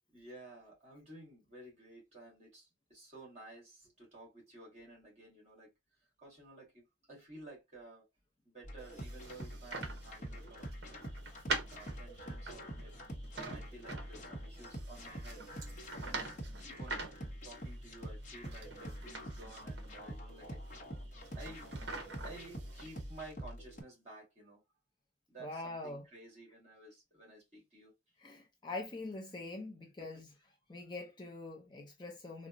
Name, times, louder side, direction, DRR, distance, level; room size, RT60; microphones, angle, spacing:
voice 1, 0.1-5.7 6.2-8.1 8.4-11.1 11.7-17.0 17.4-20.6 21.3-24.6 25.3-27.9 30.0-30.1, right 2 dB, 35° right, 2.0 m, -54 dB
sound 1, 8.6-23.8, equal, 40° left, 0.8 m, -46 dB
sound 2, 8.8-23.3, right 3 dB, 55° right, 0.8 m, -46 dB
voice 2, 25.4-26.0 28.2-30.3 30.7-32.5, left 2 dB, 20° left, 0.4 m, -44 dB
3.9 x 2.0 x 2.5 m
head